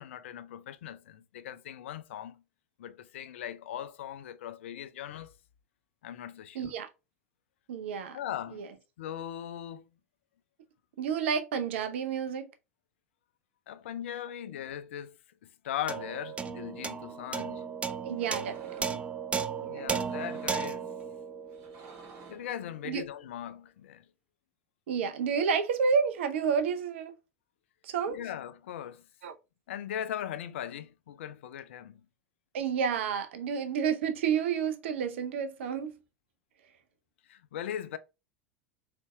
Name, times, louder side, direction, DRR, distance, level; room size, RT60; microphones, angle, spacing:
voice 1, 0.0-2.4 2.8-5.3 6.0-6.7 8.1-8.7 9.0-9.9 13.7-15.2 15.4-17.7 19.7-20.9 22.3-24.1 28.1-29.1 29.7-32.0 37.3-38.0, left 10 dB, 65° left, 0.4 m, -39 dB
voice 2, 6.5-6.9 7.7-8.2 8.5-8.7 11.0-12.5 18.0-18.6 18.9-19.0 19.6-19.9 22.8-23.0 24.9-27.1 27.8-28.2 29.2-29.3 32.5-35.9, right 6 dB, 65° right, 0.5 m, -30 dB
sound 1, 15.9-22.5, right 6 dB, 15° right, 0.4 m, -35 dB
sound 2, 18.1-19.1 19.9-20.8 21.5-22.5, right 4 dB, 45° right, 1.6 m, -52 dB
3.9 x 3.3 x 2.2 m
figure-of-eight pair, 80°, 7 cm